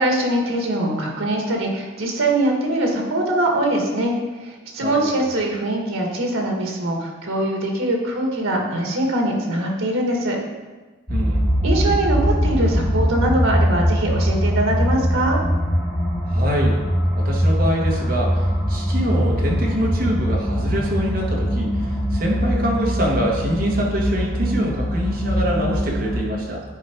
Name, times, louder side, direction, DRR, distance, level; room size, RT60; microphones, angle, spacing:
voice 1, 0.0-10.4 11.6-15.4, right 1 dB, 85° right, 1 dB, 1.7 m, -22 dB
voice 2, 4.8-5.2 11.1-11.4 16.3-16.8 17.1-26.6, equal, 45° right, -2 dB, 1.6 m, -25 dB
sound 1, 11.1-26.2, equal, 10° left, 1.7 m, -22 dB
10.0 x 4.8 x 4.5 m, 1.2 s
head